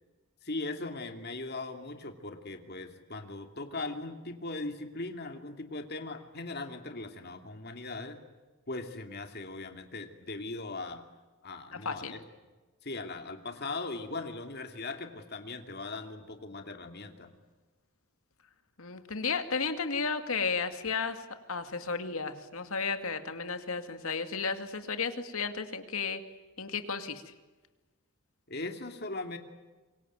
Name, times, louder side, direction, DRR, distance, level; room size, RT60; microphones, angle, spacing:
voice 1, 0.4-8.2 8.7-11.0 11.4-12.2 12.8-17.4 28.5-29.4, left 3 dB, 50° left, 5 dB, 2.6 m, -39 dB
voice 2, 18.8-26.2 26.6-27.3, left 5 dB, 75° left, 8 dB, 2.3 m, -33 dB
26.0 x 23.5 x 9.3 m, 1.2 s
head